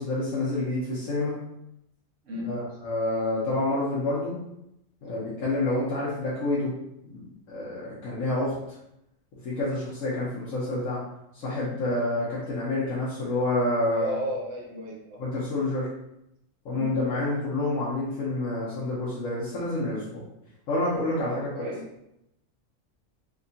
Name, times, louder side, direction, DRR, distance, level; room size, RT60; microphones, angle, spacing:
voice 1, 0.0-1.3 2.4-4.3 5.0-6.7 7.1-8.8 9.4-11.0 11.3-14.2 15.2-15.9 16.6-20.2 20.7-21.5, left 2 dB, 80° left, -8 dB, 1.2 m, -28 dB
voice 2, 2.2-2.6 13.9-15.2 16.7-17.0 21.1-21.8, equal, 70° right, -1 dB, 1.1 m, -34 dB
3.5 x 2.2 x 2.6 m, 0.82 s
omnidirectional pair, 1.4 m